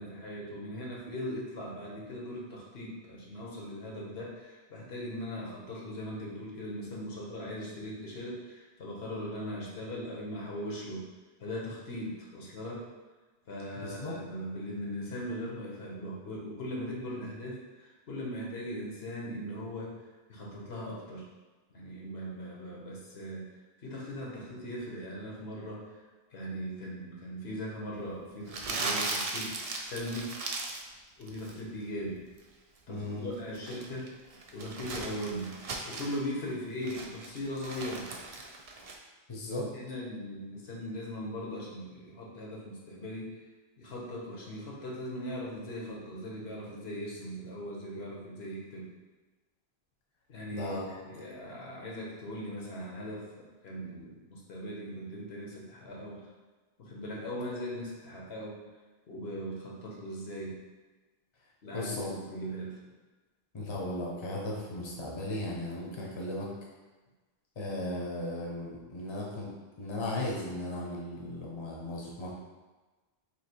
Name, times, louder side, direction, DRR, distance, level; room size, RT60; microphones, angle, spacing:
voice 1, 0.0-11.0 11.4-12.8 13.5-20.0 20.3-21.2 21.7-26.0 26.3-29.6 29.8-30.3 31.2-32.2 32.9-34.1 34.5-35.5 35.9-38.1 39.5-43.4 43.8-48.9 50.3-56.3 56.8-58.6 59.1-60.6 61.6-62.8, equal, 80° left, -3 dB, 1.2 m, -39 dB
voice 2, 13.8-14.2 32.9-33.3 39.3-39.7 50.5-50.9 61.7-62.1 63.5-66.5 67.6-69.5 69.8-72.3, left 1 dB, 30° left, -2 dB, 0.7 m, -36 dB
Crumpling crinkling, 28.5-30.9 31.2-31.6 33.3-36.2 36.6-39.0, right 3 dB, 50° right, 0.4 m, -37 dB
3.2 x 2.8 x 4.3 m, 1.2 s
omnidirectional pair, 1.0 m